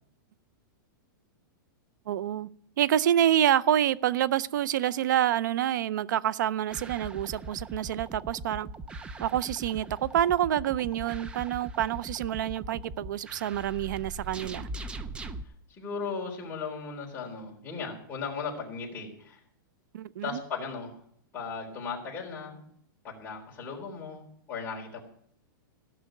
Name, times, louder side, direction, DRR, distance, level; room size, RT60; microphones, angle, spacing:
voice 1, 2.1-2.5 2.8-8.7 9.2-14.7 19.9-20.4, right 11 dB, 60° right, 0.5 m, -27 dB
sound 1, 6.7-15.4, right 2 dB, 10° right, 0.4 m, -40 dB
voice 2, 15.8-19.4 20.2-21.0 21.3-22.7 23.0-25.0, left 5 dB, 15° left, 3.8 m, -37 dB
16.0 x 6.3 x 9.0 m
supercardioid pair, 170°, 11 cm